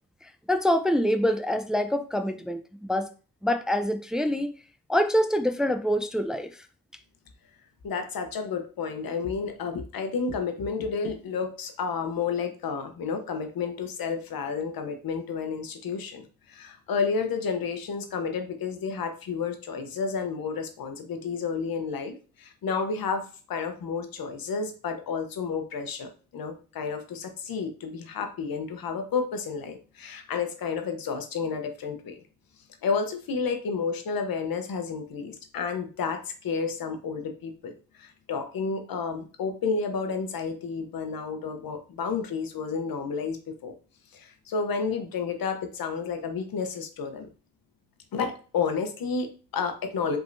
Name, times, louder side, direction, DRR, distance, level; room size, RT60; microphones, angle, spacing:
voice 1, 0.2-3.1 3.4-4.5 4.9-6.5, equal, ahead, 8 dB, 0.5 m, -25 dB
voice 2, 7.8-32.2 32.8-43.7 44.1-47.3 48.1-50.2, left 5 dB, 75° left, 6 dB, 0.9 m, -31 dB
5.0 x 3.6 x 2.6 m, 0.36 s
cardioid pair, 50°, 35 cm